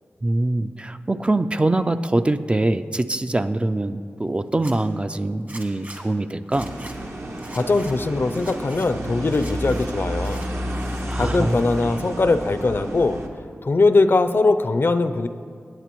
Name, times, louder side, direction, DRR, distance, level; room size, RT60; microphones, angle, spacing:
voice 1, 0.2-6.7 11.1-11.6, right 2 dB, 25° right, 10 dB, 0.3 m, -23 dB
Zipper (clothing), 4.5-4.7 5.5-6.0 6.5-6.9 7.4-7.9 8.3-8.9 9.3-9.9 10.2-11.0 11.3-11.9, right 2 dB, 40° right, 1.3 m, -42 dB
sound 1, 6.5-13.3, equal, 65° right, 1.1 m, -31 dB
voice 2, 7.5-10.5 11.2-13.2 13.6-15.3, left 3 dB, 50° left, 10 dB, 0.4 m, -20 dB
16.5 x 8.8 x 3.0 m, 2.2 s
wide cardioid pair, 60°, 5 cm